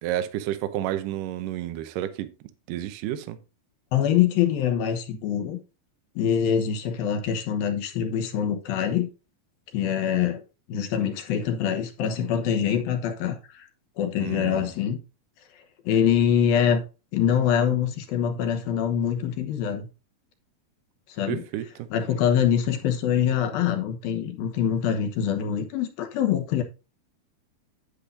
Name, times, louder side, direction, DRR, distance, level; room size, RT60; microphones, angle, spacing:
voice 1, 0.0-2.3 2.7-3.4 14.2-14.7 21.3-21.9, right 12 dB, 75° right, 2.2 m, -31 dB
voice 2, 3.9-5.6 6.2-9.1 9.7-10.4 10.7-13.7 14.0-15.0 15.9-16.8 17.1-19.9 21.1-21.4 21.9-26.6, left 9 dB, 80° left, 2.8 m, -24 dB
10.0 x 8.6 x 2.6 m
omnidirectional pair, 4.3 m